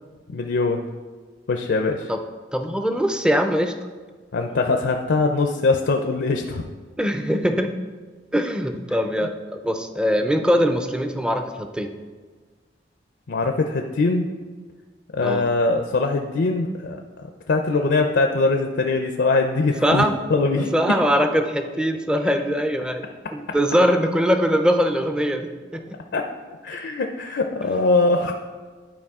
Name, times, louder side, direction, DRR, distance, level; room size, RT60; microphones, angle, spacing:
voice 1, 0.3-0.8 1.5-2.1 4.3-6.6 13.3-14.3 15.1-20.0 20.3-20.7 26.1-26.2 26.6-28.3, left 3 dB, 70° left, 4 dB, 0.5 m, -22 dB
voice 2, 2.5-3.7 7.0-7.7 8.3-11.9 15.2-15.5 19.8-20.1 20.6-23.0 23.3-26.0, equal, 5° right, 6 dB, 0.4 m, -22 dB
11.5 x 4.7 x 3.6 m, 1.4 s
head